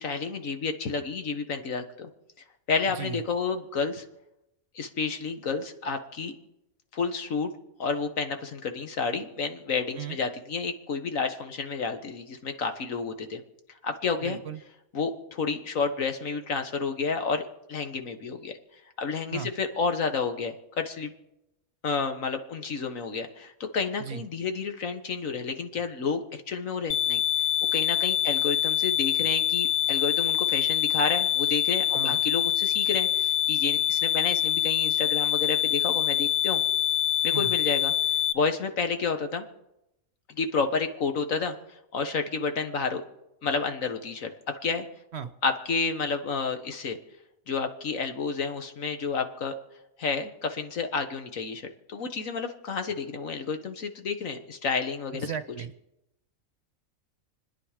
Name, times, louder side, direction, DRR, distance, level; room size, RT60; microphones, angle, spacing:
voice 1, 0.0-2.1 2.7-4.0 4.8-6.3 6.9-7.5 7.8-13.4 13.8-14.4 14.9-18.5 19.0-21.1 21.8-27.2 27.7-36.6 37.2-37.9 38.3-39.4 40.3-41.6 41.9-43.0 43.4-44.3 44.6-44.9 45.4-47.0 47.5-49.5 50.0-55.3, left 5 dB, 70° left, 6 dB, 1.7 m, -30 dB
voice 2, 2.9-3.2 10.0-10.2 14.2-14.6 19.3-19.5 24.0-24.2 31.9-32.2 37.3-37.5 45.1-45.3 55.1-55.7, right 8 dB, 55° right, 11 dB, 1.0 m, -36 dB
sound 1, 26.9-38.3, left 11 dB, 90° left, 1.2 m, -25 dB
28.5 x 9.9 x 5.0 m, 0.88 s
omnidirectional pair, 1.5 m